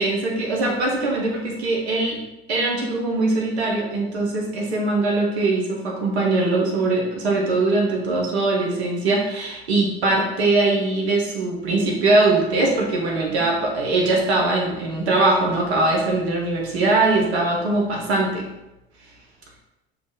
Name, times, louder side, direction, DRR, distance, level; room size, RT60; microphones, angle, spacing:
voice 1, 0.0-2.2 2.5-18.5, right 2 dB, 80° right, -1 dB, 1.0 m, -21 dB
6.9 x 2.4 x 2.7 m, 0.96 s
hypercardioid pair, 70°, 32 cm